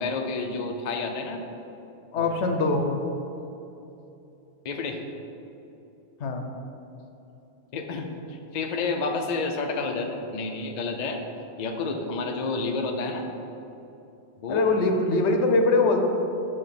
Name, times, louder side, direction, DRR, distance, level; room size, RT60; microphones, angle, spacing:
voice 1, 0.0-1.4 2.2-2.3 4.6-5.0 7.7-11.2 11.6-13.3 14.4-14.6, left 3 dB, 50° left, 4 dB, 0.6 m, -30 dB
voice 2, 2.1-2.9 6.2-6.4 14.5-16.0, left 3 dB, 80° left, 4 dB, 1.0 m, -22 dB
5.5 x 5.2 x 5.7 m, 2.9 s
omnidirectional pair, 1.2 m